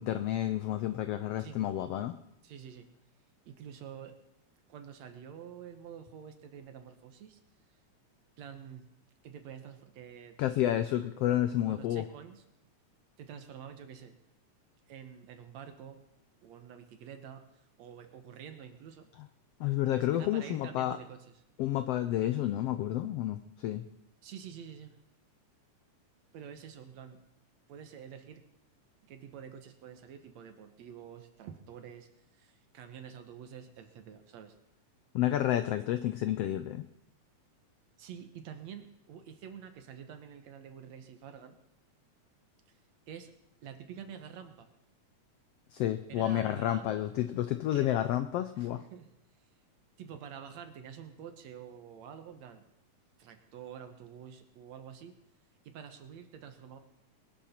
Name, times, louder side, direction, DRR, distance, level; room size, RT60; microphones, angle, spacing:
voice 1, 0.0-2.2 10.4-12.0 19.6-21.0 21.6-23.8 35.1-36.9 45.7-48.8, left 12 dB, 90° left, 11 dB, 1.3 m, -30 dB
voice 2, 2.4-2.9 3.5-4.2 4.7-7.4 8.4-8.8 9.2-10.4 11.6-12.4 13.2-14.2 14.9-16.0 16.4-19.1 19.9-21.3 24.2-25.0 26.3-27.2 27.7-28.4 29.0-34.6 38.0-41.6 43.1-43.3 43.6-44.7 46.1-47.1 47.7-47.9 48.6-49.1 50.0-52.7 53.2-55.2 55.6-56.8, right 8 dB, 65° right, 7 dB, 2.3 m, -48 dB
21.5 x 12.0 x 4.4 m, 0.83 s
omnidirectional pair, 3.5 m